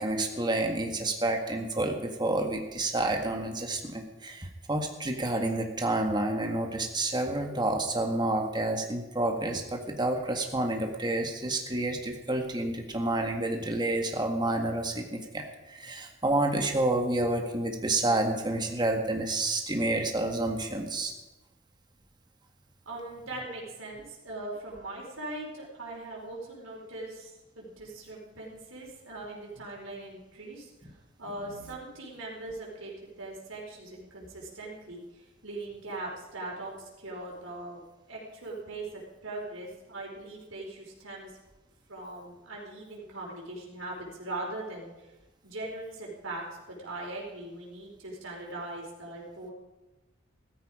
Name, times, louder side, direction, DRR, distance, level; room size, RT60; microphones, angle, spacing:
voice 1, 0.0-21.1, right 2 dB, 20° right, 3 dB, 1.8 m, -29 dB
voice 2, 22.8-41.3 41.9-45.1 45.4-49.5, right 2 dB, 80° right, -2 dB, 4.7 m, -40 dB
15.0 x 14.0 x 5.0 m, 1.1 s
head